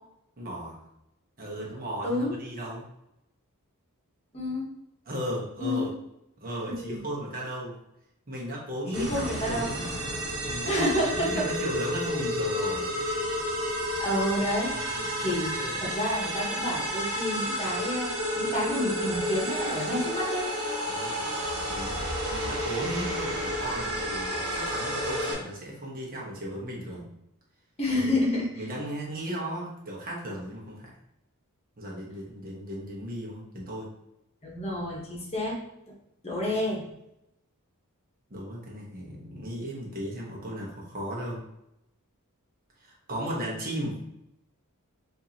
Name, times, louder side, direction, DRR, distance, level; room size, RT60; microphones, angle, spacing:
voice 1, 0.4-0.8 1.4-2.8 5.1-5.9 6.4-7.8 8.3-10.0 10.4-12.9 14.8-15.8 17.3-17.4 20.9-21.2 21.7-27.1 27.9-28.1 28.6-30.9 31.8-33.9 38.3-41.4 42.8-44.0, right 1 dB, 40° right, -3 dB, 1.0 m, -36 dB
voice 2, 2.0-2.3 4.3-4.7 5.6-5.9 6.7-7.0 8.9-9.7 10.7-11.4 14.0-15.5 15.8-18.1 18.4-20.5 22.8-23.1 27.8-28.6 34.4-35.6 36.2-36.8, left 1 dB, 30° left, -3 dB, 1.1 m, -29 dB
sound 1, 8.9-25.3, equal, 70° right, 1.1 m, -31 dB
4.6 x 2.7 x 2.8 m, 0.82 s
head